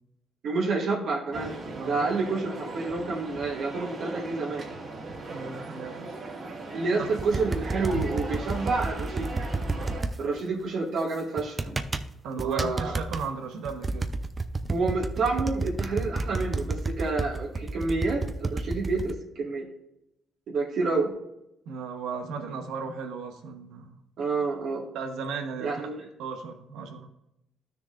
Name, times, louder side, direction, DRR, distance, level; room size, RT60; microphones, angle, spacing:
voice 1, 0.4-1.5 1.8-4.6 6.7-9.4 10.2-11.8 12.4-12.9 14.7-19.7 20.5-21.1 24.2-24.8 25.6-26.1, right 3 dB, 70° right, -3 dB, 1.9 m, -29 dB
sound 1, 1.3-10.0, right 2 dB, 50° right, 2.2 m, -38 dB
voice 2, 1.7-2.1 5.3-6.1 7.0-7.1 12.2-14.2 21.7-24.0 24.9-25.7 26.2-27.1, right 5 dB, 90° right, 5 dB, 1.1 m, -35 dB
sound 2, 7.2-10.1 11.4-12.1 12.4-13.2 13.6-19.1, right 3 dB, 25° right, 0.7 m, -30 dB
12.5 x 6.6 x 2.5 m, 0.84 s
cardioid pair, 90°, 0 cm